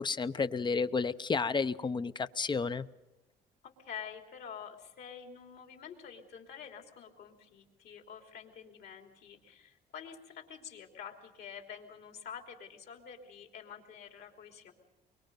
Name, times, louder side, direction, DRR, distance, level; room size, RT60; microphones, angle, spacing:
voice 1, 0.0-2.9, left 4 dB, 25° left, 13 dB, 0.7 m, -31 dB
voice 2, 3.6-14.7, left 7 dB, 70° left, 3 dB, 3.3 m, -48 dB
24.5 x 23.0 x 5.3 m, 1.0 s
cardioid pair, 100°, 17 cm